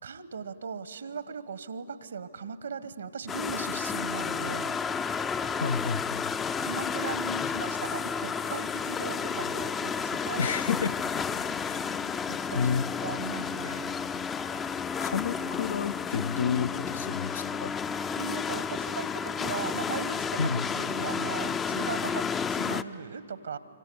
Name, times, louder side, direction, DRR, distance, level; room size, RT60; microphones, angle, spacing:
voice 1, 0.0-4.8 6.6-10.5 11.3-11.4 12.3-13.9 18.1-23.6, right 5 dB, 70° right, 14 dB, 1.2 m, -38 dB
sound 1, 3.3-22.8, left 6 dB, 15° left, 0.5 m, -31 dB
voice 2, 5.6-6.3 10.4-10.9 11.6-11.8 12.5-12.9 15.0-17.7 20.4-20.7, left 6 dB, 65° left, 14 dB, 0.6 m, -30 dB
25.5 x 25.0 x 7.0 m, 2.2 s
figure-of-eight pair, 120°, 0 cm